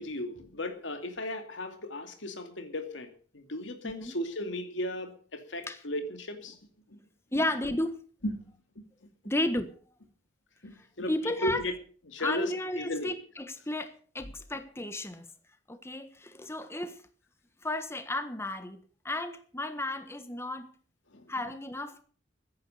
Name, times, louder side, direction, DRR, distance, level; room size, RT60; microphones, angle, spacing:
voice 1, 0.0-6.6 6.9-7.0 8.2-8.5 10.6-11.7 12.1-13.2 21.1-21.3, left 1 dB, 85° left, 2.6 m, -36 dB
voice 2, 7.3-8.0 9.2-9.7 11.1-11.6 12.2-15.3 15.7-17.0 17.6-20.7 21.3-22.0, left 1 dB, 15° left, 1.4 m, -33 dB
15.0 x 10.5 x 6.7 m
head